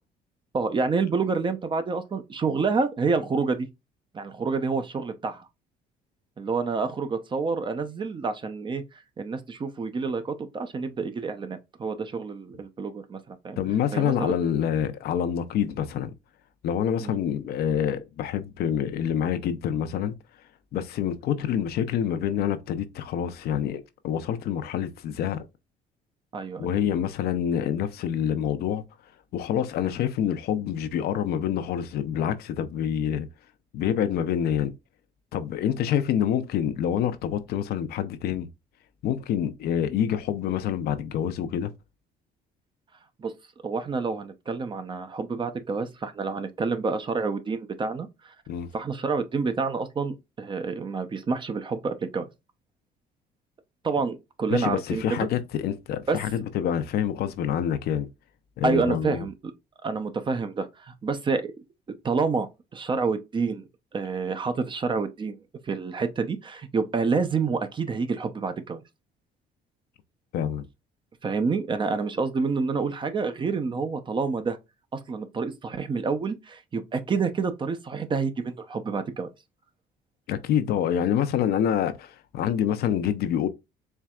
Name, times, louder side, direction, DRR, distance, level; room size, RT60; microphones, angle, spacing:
voice 1, 0.5-3.7 4.1-5.5 6.4-8.8 9.2-13.6 13.9-14.3 17.0-17.2 26.3-26.8 43.2-43.3 43.6-48.3 48.7-52.3 53.8-55.3 56.1-56.2 58.6-59.3 59.8-61.5 62.0-63.7 63.9-65.4 65.7-68.8 71.2-74.6 74.9-79.3, right 4 dB, 30° right, 0.6 m, -28 dB
voice 2, 13.6-16.1 16.6-20.1 20.7-25.4 26.6-28.8 29.3-33.3 33.7-34.7 35.3-38.5 39.0-41.7 48.5-48.7 54.5-58.1 58.6-59.2 70.3-70.7 80.3-83.5, left 9 dB, 70° left, 0.6 m, -27 dB
4.5 x 3.3 x 2.3 m
cardioid pair, 110°, 17 cm